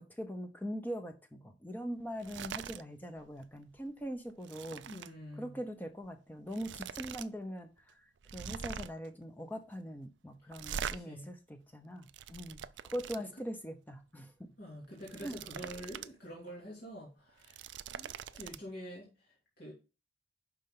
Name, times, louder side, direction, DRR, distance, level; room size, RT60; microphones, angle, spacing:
voice 1, 0.0-4.9 5.4-14.6 15.2-15.4, equal, 10° left, 0.8 m, -42 dB
sound 1, 2.2-2.8 3.2-3.4 3.8-5.1 6.1-6.2 6.5-7.3 7.6-7.7 8.2-9.1 10.5-11.0 11.8-13.2 14.8-16.1 16.5-16.6 17.3-18.6, right 7 dB, 75° right, 0.4 m, -43 dB
voice 2, 4.9-5.6 10.9-11.3 13.2-13.3 14.6-17.6 17.9-19.3 19.6-19.7, equal, 50° left, 3.0 m, -47 dB
11.0 x 4.3 x 3.9 m
head